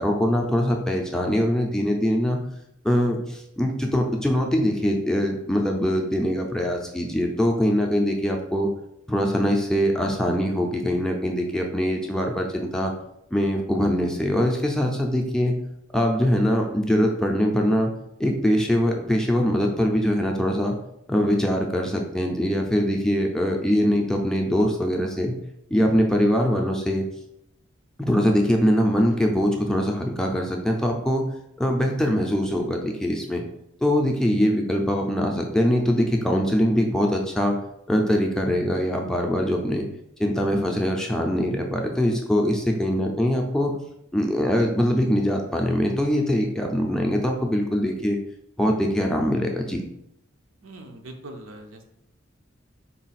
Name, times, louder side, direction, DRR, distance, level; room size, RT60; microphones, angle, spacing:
voice 1, 0.0-2.4 2.8-8.7 9.1-12.9 13.3-15.6 15.9-17.9 18.2-20.8 21.1-25.4 25.7-27.1 28.0-31.2 31.6-33.4 33.8-37.6 37.9-39.9 40.2-43.7 44.1-48.2 48.6-49.8, equal, 5° left, 1 dB, 0.4 m, -23 dB
voice 2, 50.6-51.8, right 1 dB, 85° right, 4 dB, 0.6 m, -41 dB
4.0 x 2.3 x 4.0 m, 0.79 s
head